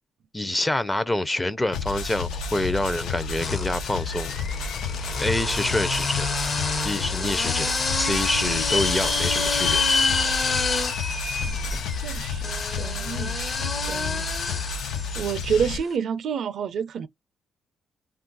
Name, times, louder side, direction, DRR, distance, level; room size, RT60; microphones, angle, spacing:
voice 1, 0.3-4.3 5.2-6.3 6.8-9.8, left 1 dB, 15° left, 0.5 m, -27 dB
sound 1, 1.7-15.8, left 5 dB, 80° left, 0.5 m, -31 dB
sound 2, 2.0-2.7 3.4-15.7, left 3 dB, 40° left, 0.8 m, -29 dB
sound 3, 3.2-3.3 3.6-5.7 6.3-6.4 6.8-6.9 7.1-7.2 7.7-12.3, left 4 dB, 65° left, 1.2 m, -30 dB
voice 2, 12.0-14.3 15.2-17.1, right 7 dB, 65° right, 0.4 m, -29 dB
2.4 x 2.2 x 3.8 m
cardioid pair, 90°, 0 cm